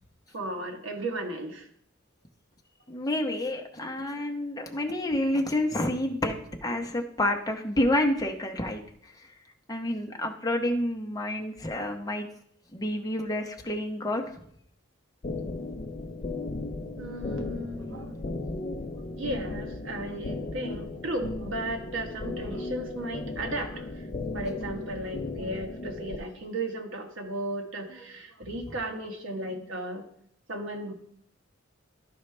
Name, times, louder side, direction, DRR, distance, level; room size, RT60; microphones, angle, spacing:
voice 1, 0.3-1.7 17.0-18.2 19.1-24.1 24.3-30.1 30.5-30.9, right 1 dB, 70° right, 3 dB, 1.3 m, -35 dB
voice 2, 2.9-8.8 9.7-12.3 12.7-14.2, left 1 dB, 20° left, 2 dB, 0.9 m, -29 dB
sound 1, 15.2-26.2, left 2 dB, 35° left, 0.5 m, -36 dB
12.0 x 4.7 x 3.3 m, 0.67 s
head